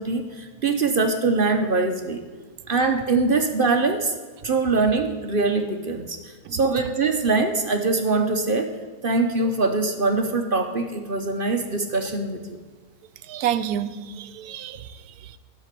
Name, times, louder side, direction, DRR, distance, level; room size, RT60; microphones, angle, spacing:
voice 1, 0.0-2.2 2.7-4.1 4.4-6.2 6.5-8.7 9.0-12.6, right 3 dB, 45° right, 5 dB, 0.8 m, -23 dB
voice 2, 13.2-15.4, right 10 dB, 75° right, 12 dB, 1.1 m, -30 dB
13.0 x 5.9 x 8.2 m, 1.5 s
omnidirectional pair, 1.7 m